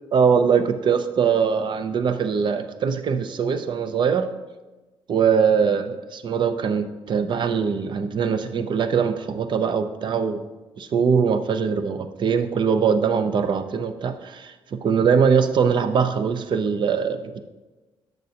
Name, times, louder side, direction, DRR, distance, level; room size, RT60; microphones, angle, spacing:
voice 1, 0.1-4.3 5.1-10.4 10.8-17.4, right 6 dB, 55° right, 10 dB, 0.6 m, -22 dB
10.5 x 6.6 x 2.8 m, 1.2 s
cardioid pair, 110°, 10 cm